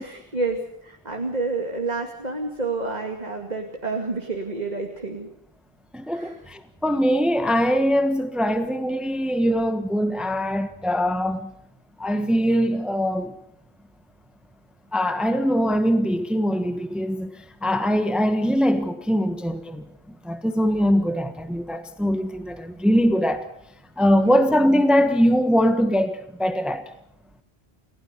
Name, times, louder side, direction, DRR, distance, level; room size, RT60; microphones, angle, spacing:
voice 1, 0.0-5.3 6.1-6.3 24.1-24.4, right 3 dB, 40° right, 2.6 m, -29 dB
voice 2, 5.9-11.5 12.0-13.3 14.9-19.8 20.2-23.5 24.0-26.9, equal, ahead, 1.3 m, -22 dB
30.0 x 16.5 x 6.8 m
omnidirectional pair, 1.1 m